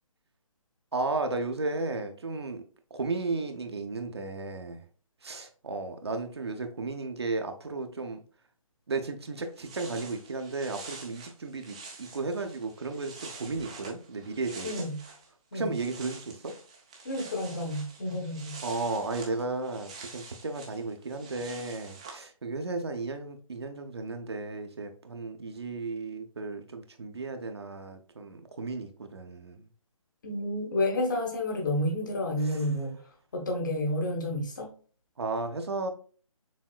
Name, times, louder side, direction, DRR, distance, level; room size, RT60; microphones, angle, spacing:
voice 1, 0.9-2.6 2.9-4.8 5.2-8.2 8.9-14.7 15.5-16.5 18.6-29.7 35.2-35.9, right 3 dB, 50° right, 0.7 m, -34 dB
sound 1, 9.6-15.3 15.6-22.2, right 4 dB, 10° right, 0.4 m, -47 dB
voice 2, 14.6-15.0 15.5-15.7 17.0-18.6 30.2-33.0 33.3-34.7, left 1 dB, 35° left, 1.3 m, -30 dB
6.3 x 3.4 x 2.3 m
figure-of-eight pair, 150°, 18 cm